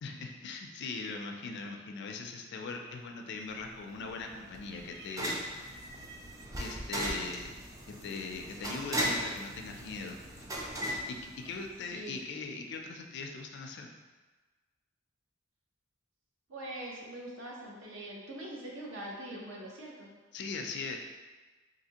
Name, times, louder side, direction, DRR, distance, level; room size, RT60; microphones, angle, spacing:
voice 1, 0.0-5.8 6.6-7.5 8.0-10.4 10.9-11.2 11.4-13.9 20.3-21.0, left 4 dB, 55° left, 3 dB, 0.4 m, -40 dB
sound 1, 2.7-3.1 3.5-4.2 4.6-6.5 7.4-7.5 8.7-9.1, right 1 dB, 40° right, 0.9 m, -53 dB
sound 2, 3.6-11.9, right 1 dB, 15° right, 0.3 m, -38 dB
voice 2, 16.5-20.1, right 1 dB, 70° right, -3 dB, 0.7 m, -43 dB
3.3 x 2.7 x 2.8 m, 1.3 s
head